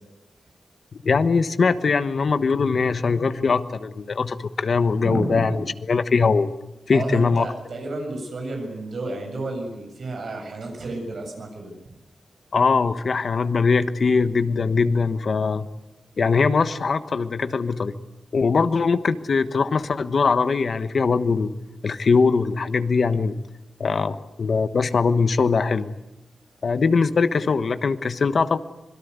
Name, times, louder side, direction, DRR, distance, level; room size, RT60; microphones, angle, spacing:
voice 1, 1.0-6.5 6.9-7.5 12.5-15.7 16.2-17.9 18.3-21.5 21.8-23.3 23.8-25.9 26.6-28.6, left 4 dB, 50° left, 10 dB, 1.3 m, -21 dB
voice 2, 5.0-5.6 6.9-11.7, right 2 dB, 60° right, 3 dB, 7.4 m, -31 dB
26.0 x 21.5 x 8.2 m, 0.95 s
wide cardioid pair, 170°, 0 cm